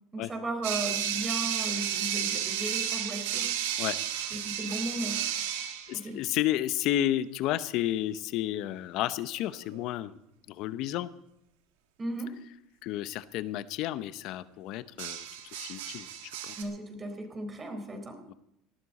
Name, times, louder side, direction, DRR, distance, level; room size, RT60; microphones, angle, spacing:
voice 1, 0.1-3.5 4.3-5.2 5.9-6.2 12.0-12.4 16.6-18.2, right 1 dB, 25° right, 6 dB, 4.1 m, -36 dB
sound 1, 0.6-6.0 9.5-9.8 15.0-16.6, right 10 dB, 85° right, 1.8 m, -32 dB
voice 2, 5.9-10.1 10.5-11.1 12.8-15.3 15.5-16.5 18.3-18.4, left 13 dB, 65° left, 14 dB, 0.8 m, -31 dB
18.5 x 13.0 x 4.2 m, 0.81 s
supercardioid pair, 95°, 0 cm